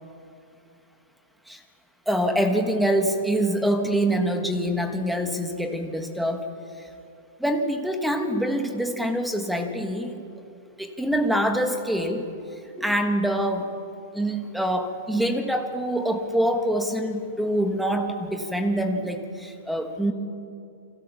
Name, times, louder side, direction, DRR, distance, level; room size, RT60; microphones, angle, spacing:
voice 1, 2.1-6.5 6.8-6.9 7.4-10.2 10.8-12.3 12.8-13.7 14.1-20.1, right 1 dB, ahead, 5 dB, 1.4 m, -25 dB
29.5 x 23.0 x 7.1 m, 2.6 s
hypercardioid pair, 175°, 0 cm